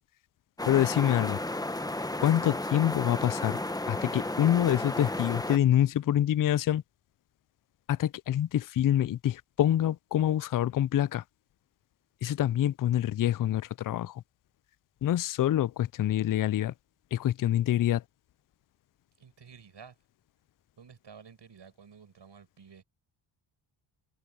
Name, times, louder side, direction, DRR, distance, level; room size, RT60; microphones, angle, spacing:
sound 1, 0.6-5.6, left 1 dB, 10° left, 1.0 m, -33 dB
voice 1, 0.7-1.4 2.2-3.6 3.9-6.8 7.9-11.2 12.2-14.2 15.0-16.7 17.1-18.0, left 11 dB, 45° left, 0.4 m, -26 dB
voice 2, 19.2-20.0 20.8-22.8, right 6 dB, 55° right, 6.6 m, -52 dB
cardioid pair, 85°, 50 cm